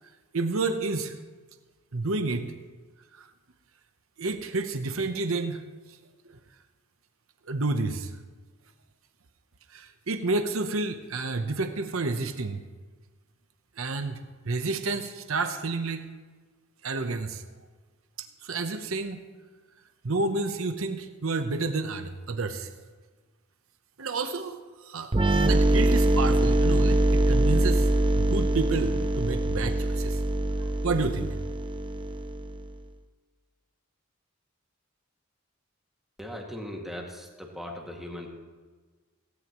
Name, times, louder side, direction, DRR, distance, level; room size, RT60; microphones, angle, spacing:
voice 1, 0.3-1.1 1.9-2.5 3.1-3.3 4.2-5.6 7.5-8.1 9.7-12.6 13.8-14.2 14.5-16.0 16.8-17.4 18.2-19.2 20.0-22.7 24.0-27.9 28.1-30.2 30.8-31.3, right 3 dB, 85° right, 7 dB, 0.9 m, -30 dB
sound 1, 25.1-32.7, right 1 dB, 25° right, 0.6 m, -23 dB
voice 2, 36.2-38.3, left 1 dB, ahead, -1 dB, 2.1 m, -38 dB
17.0 x 17.0 x 3.1 m, 1.4 s
head